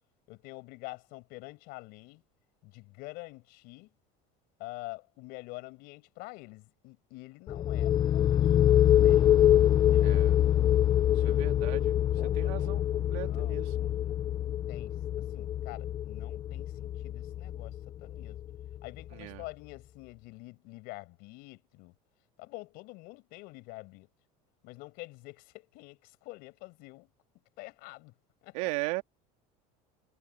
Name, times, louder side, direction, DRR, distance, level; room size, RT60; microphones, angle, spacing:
voice 1, 0.3-2.2 2.6-3.9 4.6-10.1 11.2-11.4 12.2-12.8 13.2-18.4 18.8-21.9 22.4-24.1 24.6-27.1 27.6-28.1 28.4-28.6, left 23 dB, 65° left, 5.7 m, -47 dB
sound 1, 7.5-19.0, left 11 dB, 25° left, 0.4 m, -25 dB
voice 2, 10.0-10.4 11.1-12.0 12.3-13.8 19.1-19.4 28.5-29.0, right 24 dB, 85° right, 2.4 m, -37 dB
cardioid pair, 150°, 17 cm